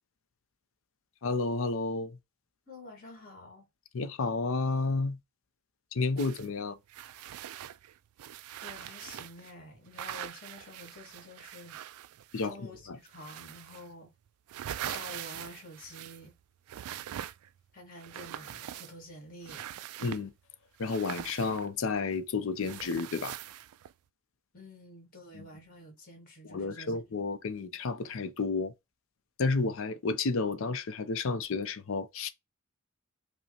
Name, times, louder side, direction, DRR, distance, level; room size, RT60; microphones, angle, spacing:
voice 1, 1.2-2.2 3.9-5.2 5.9-6.8 12.3-12.6 12.9-13.0 20.0-20.3 20.8-23.4 25.3-25.5 26.4-28.7 29.4-32.3, left 3 dB, 65° left, 0.5 m, -31 dB
voice 2, 2.7-3.7 8.6-11.8 12.4-14.1 14.8-16.3 17.7-19.7 24.5-27.0, left 1 dB, 40° left, 1.5 m, -49 dB
sound 1, 6.2-6.5 6.9-9.5 9.9-12.6 13.1-13.9 14.3-16.3 16.7-17.6 18.0-19.1 19.4-20.3 20.8-22.2 22.6-23.9, right 11 dB, 85° right, 0.3 m, -43 dB
5.3 x 2.1 x 2.8 m
head